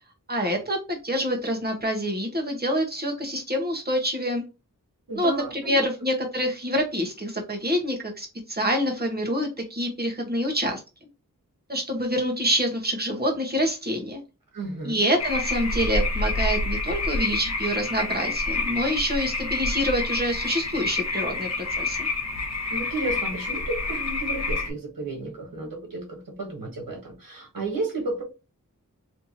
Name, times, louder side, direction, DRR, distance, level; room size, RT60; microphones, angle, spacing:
voice 1, 0.3-4.4 5.1-5.3 5.6-10.8 11.7-14.2 14.8-22.1, equal, 30° right, 1 dB, 1.3 m, -26 dB
voice 2, 5.1-5.9 14.5-15.0 22.7-28.2, right 2 dB, 85° right, 1 dB, 1.3 m, -32 dB
sound 1, 15.2-24.7, left 3 dB, 50° left, 1.0 m, -28 dB
3.3 x 2.9 x 2.8 m, 0.29 s
wide cardioid pair, 65°, 33 cm